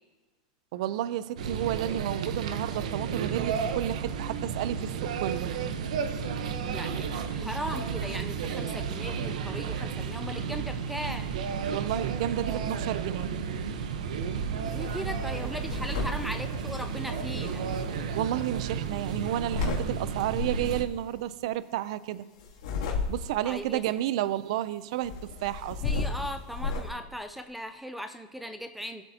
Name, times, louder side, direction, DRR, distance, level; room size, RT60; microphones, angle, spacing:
voice 1, 0.7-5.5 11.7-13.3 18.1-22.2 23.1-25.8, right 12 dB, 60° right, 15 dB, 0.4 m, -31 dB
sound 1, 1.4-20.8, right 6 dB, 85° right, 0.9 m, -32 dB
voice 2, 6.6-11.3 14.7-17.6 23.4-23.8 25.8-29.0, equal, ahead, 8 dB, 0.4 m, -38 dB
sound 2, 14.7-15.0 15.3-17.8 18.9-19.8 20.3-20.8 22.4-23.5 25.0-26.9, left 4 dB, 75° left, 2.5 m, -33 dB
20.5 x 7.9 x 2.8 m, 1.2 s
supercardioid pair, 155°, 4 cm